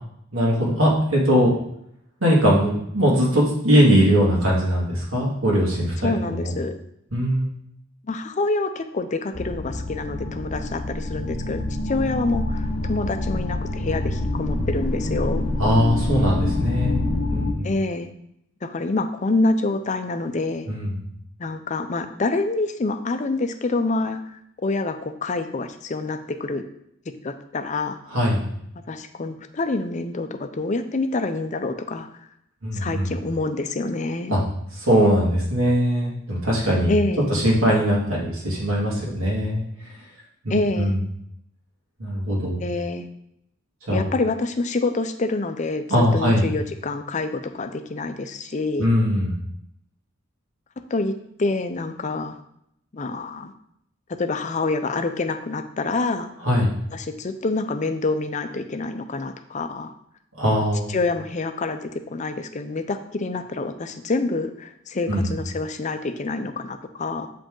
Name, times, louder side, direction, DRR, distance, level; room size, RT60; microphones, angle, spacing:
voice 1, 0.3-1.5 2.2-6.5 7.1-7.5 15.6-17.7 20.7-21.0 28.1-28.4 32.6-33.1 34.3-34.4 34.8-36.9 37.3-39.6 40.4-41.0 42.0-42.6 43.9-44.0 45.9-46.5 48.8-49.3 56.4-56.7 60.4-60.9 65.1-65.3, equal, 75° right, -4 dB, 2.3 m, -20 dB
voice 2, 6.0-6.8 8.0-15.5 17.6-18.1 18.6-20.7 21.4-26.6 27.2-28.0 28.9-32.1 32.7-34.3 36.9-37.3 40.5-41.0 42.6-43.1 43.9-48.9 50.9-52.4 52.9-53.5 54.2-56.3 56.9-59.9 60.9-67.3, left 3 dB, 35° left, 8 dB, 0.5 m, -27 dB
sound 1, 9.3-17.5, left 2 dB, 70° left, 0.9 m, -26 dB
7.1 x 5.1 x 3.8 m, 0.75 s
head